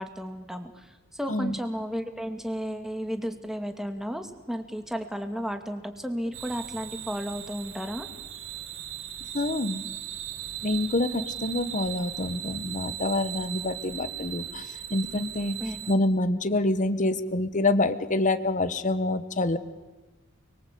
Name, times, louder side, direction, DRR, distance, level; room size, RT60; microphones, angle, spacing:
voice 1, 0.0-8.1 15.6-16.0, equal, ahead, 6 dB, 2.3 m, -33 dB
sound 1, 6.3-16.0, right 11 dB, 70° right, 2.3 m, -38 dB
voice 2, 9.3-9.8 10.6-15.6 15.9-19.6, left 2 dB, 40° left, 12 dB, 1.3 m, -27 dB
30.0 x 23.0 x 8.5 m, 1.2 s
head